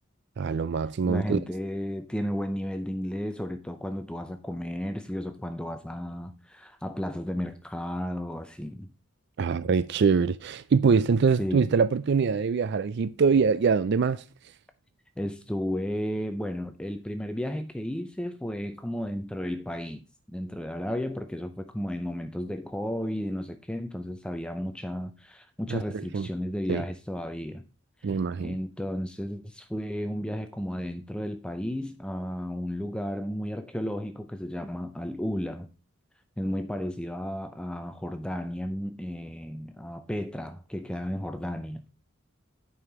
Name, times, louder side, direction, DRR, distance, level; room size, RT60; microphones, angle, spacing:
voice 1, 0.4-1.4 9.4-14.2 25.7-26.3 26.7-26.8 28.0-28.6, right 5 dB, 55° right, 0.4 m, -24 dB
voice 2, 1.0-8.9 11.4-11.7 15.2-27.6 28.0-35.7 36.4-41.8, equal, 5° left, 0.5 m, -33 dB
9.6 x 5.6 x 4.7 m
head